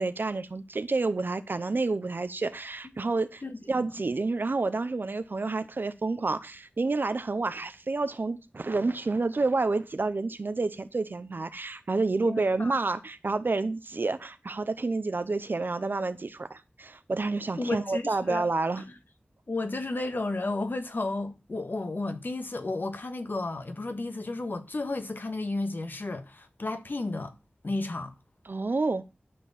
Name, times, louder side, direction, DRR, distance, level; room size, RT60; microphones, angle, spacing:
voice 1, 0.0-3.4 3.7-18.8 28.5-29.0, right 3 dB, 65° right, 0.7 m, -29 dB
voice 2, 3.4-3.8 12.2-12.8 17.6-18.4 18.8-18.9 19.5-27.3 27.6-28.1, left 2 dB, 65° left, 1.6 m, -33 dB
12.0 x 4.5 x 7.2 m
wide cardioid pair, 50°, 4 cm